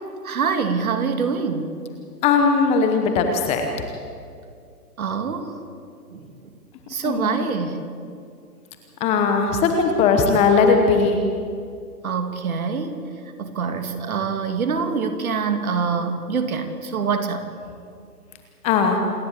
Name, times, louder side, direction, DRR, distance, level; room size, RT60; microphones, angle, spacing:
voice 1, 0.2-1.8 5.0-5.6 6.1-6.3 6.9-7.8 12.0-13.1 13.4-17.5, right 5 dB, 60° right, 7 dB, 2.6 m, -25 dB
voice 2, 2.2-3.7 7.0-7.4 9.0-11.2 18.6-19.0, left 5 dB, 15° left, 5 dB, 1.0 m, -18 dB
27.5 x 11.0 x 8.8 m, 2.3 s
hypercardioid pair, 145°, 47 cm